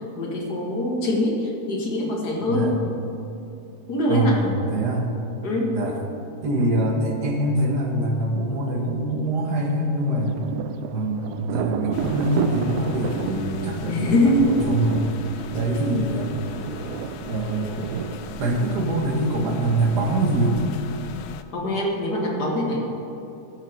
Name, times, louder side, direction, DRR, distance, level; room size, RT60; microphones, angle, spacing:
voice 1, 0.0-2.7 3.9-4.4 5.4-5.7 13.9-14.6 21.5-22.8, left 1 dB, 50° left, -1 dB, 2.1 m, -23 dB
voice 2, 4.1-5.2 5.7-6.0 6.4-10.4 10.9-15.1 15.5-16.5 17.3-17.9 18.4-20.6, right 1 dB, 55° right, 2 dB, 1.8 m, -24 dB
Thunder, 9.9-19.4, right 8 dB, 80° right, 0.9 m, -32 dB
sound 1, 11.9-21.4, left 8 dB, 80° left, 0.9 m, -40 dB
13.5 x 6.6 x 6.5 m, 2.8 s
omnidirectional pair, 2.3 m